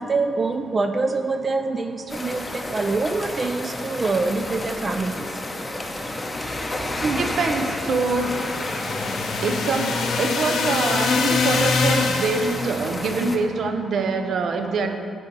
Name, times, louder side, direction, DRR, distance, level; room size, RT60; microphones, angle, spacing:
voice 1, 0.0-7.0 8.7-9.4, right 3 dB, 25° right, 7 dB, 0.3 m, -27 dB
sound 1, 2.1-13.4, left 1 dB, 15° left, 0.6 m, -31 dB
voice 2, 7.0-8.4 9.4-15.0, right 4 dB, 60° right, 6 dB, 0.7 m, -24 dB
sound 2, 7.8-12.8, left 4 dB, 75° left, 0.8 m, -24 dB
9.1 x 4.1 x 7.0 m, 2.4 s
wide cardioid pair, 150°, 0 cm